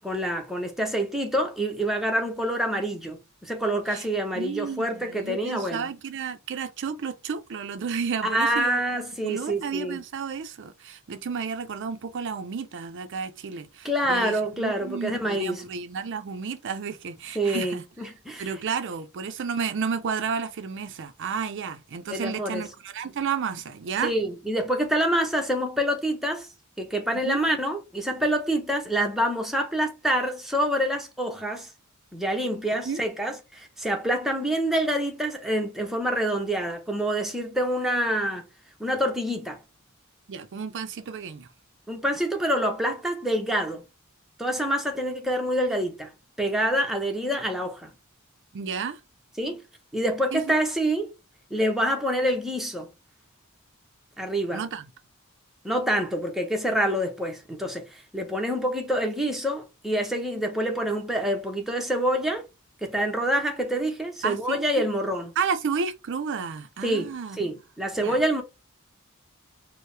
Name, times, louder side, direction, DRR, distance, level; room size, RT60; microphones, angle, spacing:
voice 1, 0.0-5.9 8.2-10.0 13.8-15.6 17.3-18.5 22.1-22.6 24.0-26.5 26.8-31.7 32.1-38.4 38.8-39.6 41.9-43.8 44.4-46.1 46.4-47.9 49.4-49.6 49.9-51.1 51.5-52.9 54.2-54.6 55.6-62.5 62.8-65.3 66.8-68.4, equal, ahead, 0.7 m, -26 dB
voice 2, 4.4-8.8 9.2-17.8 18.4-24.1 27.1-27.4 32.9-33.0 40.3-41.5 48.5-49.0 50.3-50.6 54.5-54.8 64.2-64.6 65.4-67.4 68.0-68.2, right 6 dB, 55° right, 0.5 m, -32 dB
4.5 x 2.0 x 3.2 m
head